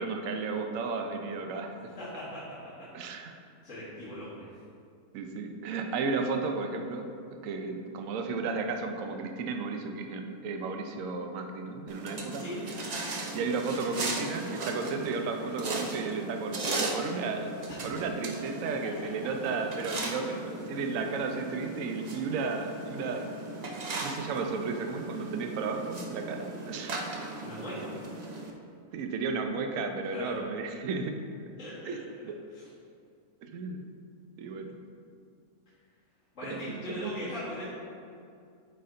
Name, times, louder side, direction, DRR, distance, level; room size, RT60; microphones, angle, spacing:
voice 1, 0.0-1.9 2.9-3.4 5.1-12.4 13.3-17.5 17.8-23.3 24.0-27.1 28.9-31.2 31.9-32.4 33.4-33.8 34.4-34.8 36.4-37.3, right 4 dB, 65° right, 4 dB, 1.0 m, -34 dB
voice 2, 2.0-2.4 3.6-4.5 12.3-12.6 27.4-27.9 30.1-30.4 31.6-32.0 32.5-32.6 36.3-37.7, equal, 55° left, -12 dB, 1.9 m, -39 dB
sound 1, 11.9-28.5, right 2 dB, 50° right, 0.4 m, -37 dB
8.4 x 4.5 x 3.8 m, 2.4 s
omnidirectional pair, 1.6 m